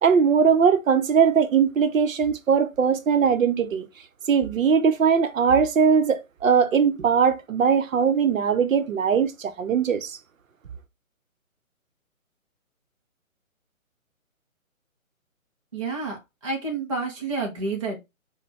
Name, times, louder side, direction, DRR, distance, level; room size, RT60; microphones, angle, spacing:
voice 1, 0.0-3.9 4.3-10.2, right 6 dB, 65° right, 0.7 m, -20 dB
voice 2, 15.7-18.0, right 3 dB, 25° right, 0.4 m, -29 dB
4.1 x 2.2 x 3.0 m
hypercardioid pair, 155°, 42 cm